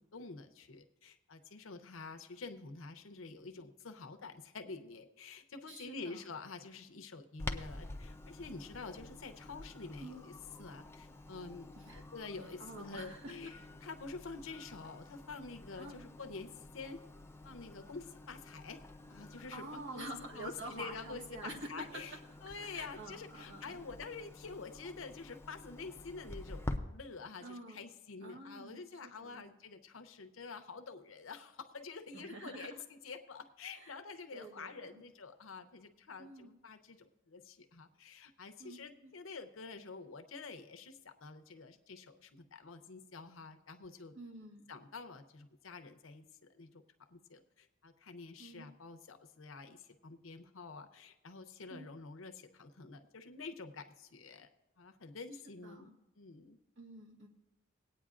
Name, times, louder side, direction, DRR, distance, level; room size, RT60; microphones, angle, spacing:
voice 1, 0.0-10.3 10.6-17.0 17.4-18.8 19.1-20.1 20.3-22.1 22.4-44.1 44.7-54.5 54.8-55.9 56.2-56.6, left 4 dB, 70° left, 7 dB, 0.8 m, -48 dB
voice 2, 5.7-6.3 10.0-10.2 11.8-12.0 12.4-13.5 15.8-16.1 19.5-22.2 22.6-23.8 27.4-27.8 28.2-29.5 32.1-32.8 33.7-34.0 34.3-35.0 36.2-36.5 38.6-39.1 44.1-44.7 48.4-48.7 51.7-51.9 55.6-55.9 56.8-57.3, right 1 dB, 65° right, 1 dB, 1.6 m, -48 dB
Clock, 7.4-26.8, left 2 dB, 10° left, 0.5 m, -48 dB
21.0 x 8.9 x 2.5 m, 0.95 s
head